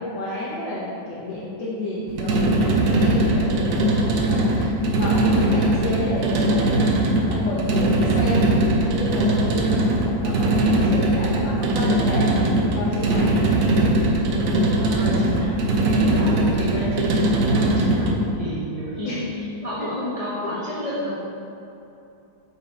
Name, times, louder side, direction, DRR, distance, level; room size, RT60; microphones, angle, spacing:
voice 1, 0.0-13.5 19.0-19.3 19.8-20.0 20.4-20.8, left 1 dB, 70° left, -8 dB, 1.5 m, -31 dB
sound 1, 2.1-18.2, right 1 dB, 70° right, 1.2 m, -20 dB
voice 2, 14.4-19.2 19.6-21.1, equal, 45° left, -9 dB, 0.4 m, -29 dB
5.6 x 4.3 x 4.0 m, 2.8 s
omnidirectional pair, 2.2 m